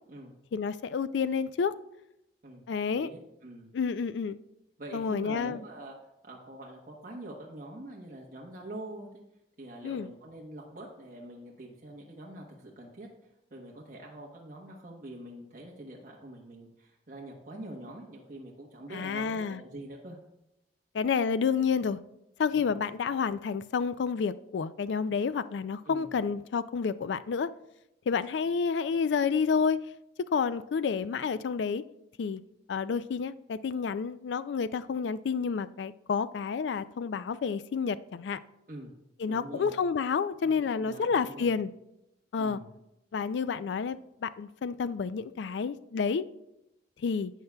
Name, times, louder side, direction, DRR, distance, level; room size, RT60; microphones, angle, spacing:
voice 1, 0.5-1.7 2.7-3.1 3.7-4.4 4.9-5.6 9.8-10.1 18.9-19.6 20.9-22.0 22.4-27.5 28.1-29.8 30.3-31.8 32.2-32.4 32.7-38.4 39.2-41.7 42.3-42.6 43.1-46.3 47.0-47.3, left 6 dB, 75° left, 14 dB, 0.4 m, -29 dB
voice 2, 2.4-3.7 4.8-5.9 6.2-9.1 9.6-13.1 13.5-20.2 22.5-22.8 25.8-26.1 38.7-39.0 39.3-39.8 40.6-41.5 42.4-42.7, right 1 dB, 50° right, -2 dB, 1.1 m, -45 dB
12.0 x 8.2 x 2.3 m, 0.87 s
head